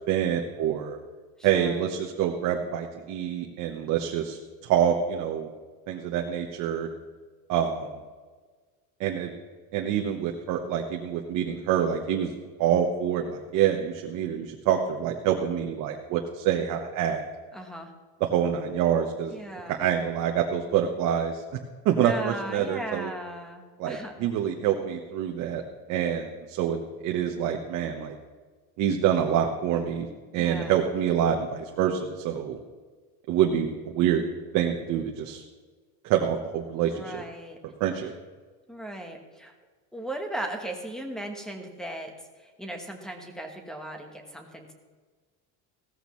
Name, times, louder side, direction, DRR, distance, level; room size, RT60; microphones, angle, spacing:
voice 1, 0.1-1.0 1.4-5.5 5.9-6.9 7.5-7.9 9.0-9.3 9.7-12.3 12.6-17.2 18.2-19.3 19.7-21.4 21.8-23.1 23.8-25.6 25.9-28.2 28.8-30.1 30.3-32.6 33.3-34.2 34.5-35.4 36.0-37.2 37.8-38.1, right 9 dB, 45° right, 1 dB, 1.1 m, -26 dB
voice 2, 1.4-1.8 17.5-17.9 19.3-19.8 22.0-24.3 30.4-30.8 36.9-37.6 38.7-39.5 39.9-42.1 42.4-44.7, right 1 dB, ahead, 4 dB, 1.2 m, -37 dB
16.5 x 14.0 x 3.1 m, 1.4 s
cardioid pair, 180°, 37 cm